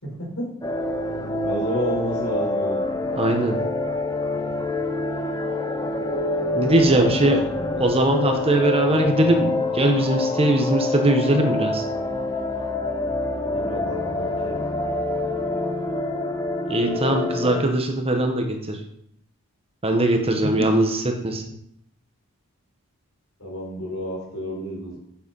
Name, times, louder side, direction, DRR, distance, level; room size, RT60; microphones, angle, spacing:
voice 1, 0.0-0.5 1.4-2.8 6.9-7.9 13.4-14.6 20.4-20.7 23.4-25.0, equal, 70° left, -2 dB, 4.2 m, -30 dB
sound 1, 0.6-17.6, left 2 dB, 15° left, 0.8 m, -26 dB
voice 2, 3.1-3.6 6.5-7.4 7.8-11.8 16.7-18.8 19.8-21.4, right 1 dB, 25° right, 4 dB, 1.1 m, -20 dB
7.8 x 7.0 x 5.5 m, 0.72 s
head